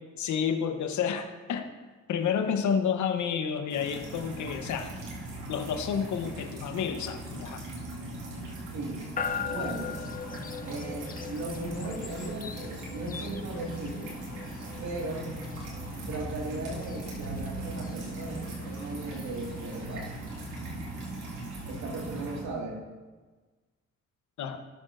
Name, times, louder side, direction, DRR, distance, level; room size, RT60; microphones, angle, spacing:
voice 1, 0.2-1.7 2.1-4.9 5.5-7.6 24.4-24.6, left 7 dB, 70° left, 6 dB, 1.1 m, -30 dB
sound 1, 3.7-22.4, right 2 dB, 85° right, 2.1 m, -39 dB
voice 2, 8.7-9.1 9.5-10.0 10.6-14.1 14.8-15.4 16.1-20.1 21.7-22.8, right 2 dB, 70° right, -1 dB, 2.1 m, -37 dB
sound 2, 9.2-22.2, left 6 dB, 30° left, 0.5 m, -41 dB
18.0 x 6.2 x 2.6 m, 1.3 s
cardioid pair, 90°, 30 cm